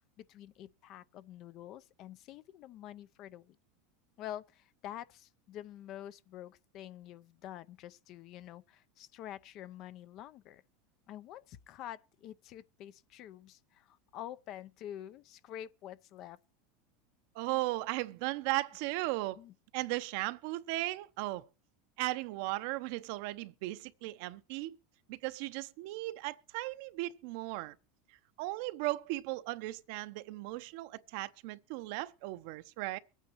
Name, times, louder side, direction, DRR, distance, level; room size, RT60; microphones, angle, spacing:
voice 1, 0.0-3.6 4.2-10.6 11.1-16.4 19.4-19.5, left 11 dB, 45° left, 0.6 m, -47 dB
voice 2, 17.3-19.4 19.7-21.4 22.0-24.8 25.1-27.7 28.4-33.0, right 19 dB, 65° right, 0.7 m, -36 dB
23.0 x 9.1 x 3.0 m
supercardioid pair, 135°, 0 cm